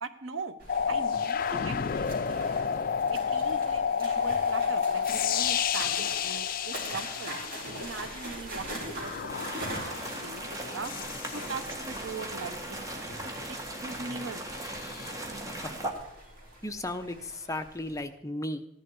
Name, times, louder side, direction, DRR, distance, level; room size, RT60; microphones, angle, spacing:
voice 1, 0.0-0.6 0.9-2.7 3.1-7.4 7.8-10.9 11.3-12.8 13.2-14.5, right 4 dB, 80° right, 10 dB, 1.0 m, -41 dB
sound 1, 0.6-18.0, right 1 dB, 50° right, 4.6 m, -43 dB
sound 2, 0.7-8.3 9.0-12.0 14.7-15.1, left 7 dB, 45° left, 0.4 m, -30 dB
sound 3, 9.3-15.9, right 1 dB, 15° right, 1.7 m, -38 dB
voice 2, 16.6-18.7, left 1 dB, 15° left, 7 dB, 0.8 m, -35 dB
15.0 x 10.5 x 4.8 m, 0.82 s
head